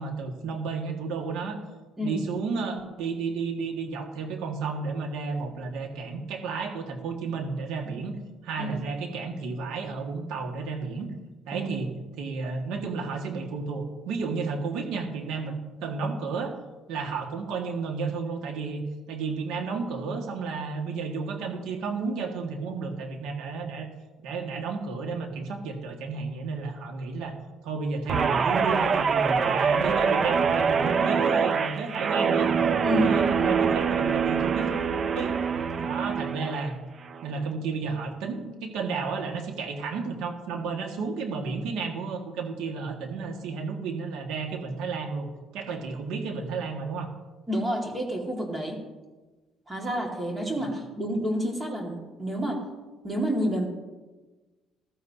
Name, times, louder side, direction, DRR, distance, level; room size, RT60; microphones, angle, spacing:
voice 1, 0.0-1.6 2.0-8.2 8.4-11.1 11.5-11.9 12.2-16.6 16.9-18.8 19.1-23.9 24.2-27.3 27.6-32.5 33.0-34.8 35.1-35.3 35.8-36.7 37.2-45.3 45.5-47.1, right 4 dB, 85° right, 3 dB, 1.8 m, -32 dB
Guitar, 28.1-36.7 37.1-37.4, right 6 dB, 30° right, 0.5 m, -25 dB
voice 2, 32.8-33.5 47.5-48.8 49.7-52.6 53.0-53.7, equal, 15° right, 0 dB, 2.0 m, -29 dB
14.5 x 14.5 x 2.8 m, 1.2 s
cardioid pair, 170°, 0 cm